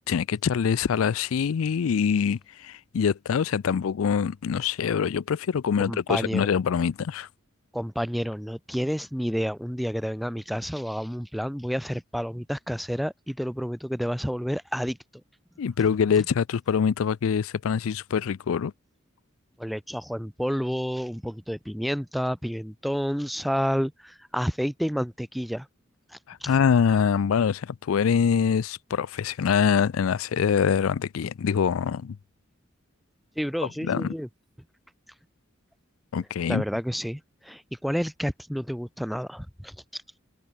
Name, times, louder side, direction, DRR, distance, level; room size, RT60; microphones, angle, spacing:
voice 1, 0.1-7.3 15.6-18.7 26.3-32.2 33.8-34.1 36.1-36.6, left 7 dB, 85° left, 0.4 m, -24 dB
voice 2, 5.8-6.5 7.7-15.0 19.6-25.7 26.1-26.6 33.4-34.3 36.5-40.2, equal, ahead, 1.4 m, -30 dB
head